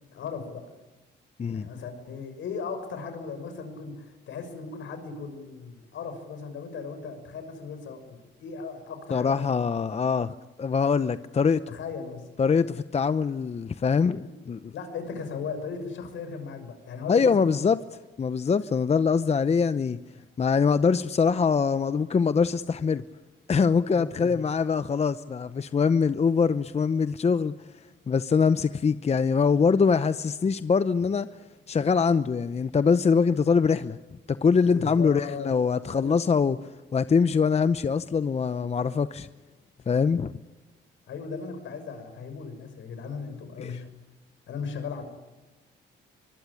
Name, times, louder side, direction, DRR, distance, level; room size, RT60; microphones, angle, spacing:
voice 1, 0.1-0.6 1.5-9.5 11.7-12.3 14.2-14.3 14.7-17.6 23.9-24.4 34.6-35.5 35.9-36.2 41.1-43.9 44.5-45.0, left 5 dB, 75° left, 6.5 m, -37 dB
voice 2, 9.1-11.6 12.4-14.7 17.1-17.8 18.2-20.0 20.4-23.0 23.5-27.5 28.1-31.3 31.7-34.0 34.3-39.3 39.9-40.3 43.6-43.8, left 5 dB, 30° left, 0.8 m, -23 dB
24.0 x 23.0 x 10.0 m
cardioid pair, 90°, 20 cm